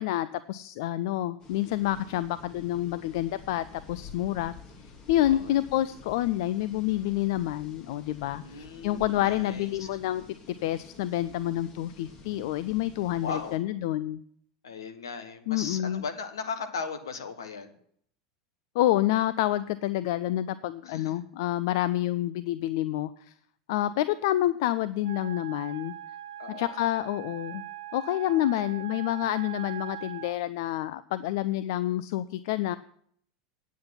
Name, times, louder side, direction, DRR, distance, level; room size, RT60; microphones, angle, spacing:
voice 1, 0.0-4.5 5.1-10.2 10.6-14.2 15.5-16.0 18.7-23.3 23.7-25.9 26.5-27.6 27.9-32.8, left 14 dB, 60° left, 15 dB, 0.4 m, -28 dB
sound 1, 1.4-13.6, left 4 dB, 35° left, 2.1 m, -49 dB
voice 2, 5.2-5.6 8.3-9.9 13.2-13.6 14.6-17.8 20.8-21.2 26.4-26.7, left 5 dB, 75° left, 8 dB, 1.2 m, -37 dB
Wind instrument woodwind instrument, 25.0-30.4, right 13 dB, 70° right, 0.5 m, -41 dB
9.4 x 8.3 x 5.7 m, 0.64 s
figure-of-eight pair, 85°, 2 cm